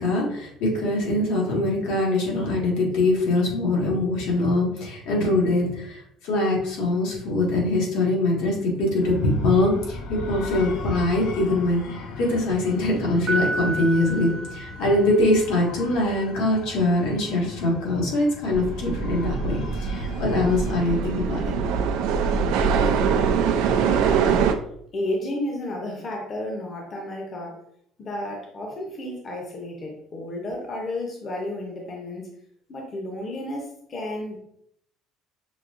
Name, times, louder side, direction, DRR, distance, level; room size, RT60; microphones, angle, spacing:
voice 1, 0.0-21.5, left 2 dB, 85° left, -3 dB, 1.7 m, -23 dB
sound 1, 9.0-20.9, left 3 dB, 70° left, 0.6 m, -39 dB
Piano, 13.3-15.4, right 2 dB, 35° right, 0.7 m, -30 dB
sound 2, 18.5-24.5, right 6 dB, 85° right, 0.4 m, -23 dB
voice 2, 24.0-24.5 24.9-27.6 28.0-32.3 32.7-34.4, left 1 dB, 30° left, 0 dB, 0.7 m, -32 dB
6.0 x 2.7 x 2.5 m, 0.69 s
cardioid pair, 175°, 0 cm